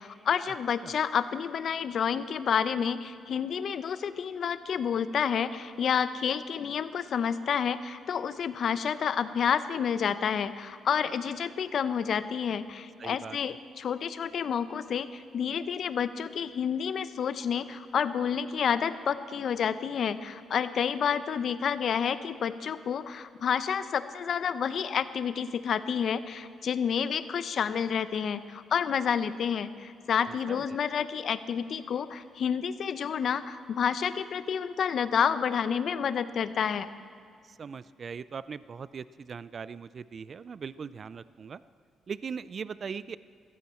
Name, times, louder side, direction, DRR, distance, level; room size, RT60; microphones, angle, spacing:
voice 1, 0.0-36.9, left 7 dB, 60° left, 13 dB, 0.6 m, -29 dB
voice 2, 13.0-13.6 30.5-30.8 37.5-41.6 42.1-43.2, right 6 dB, 45° right, 17 dB, 0.3 m, -40 dB
16.0 x 14.5 x 4.4 m, 2.4 s
cardioid pair, 90°, 0 cm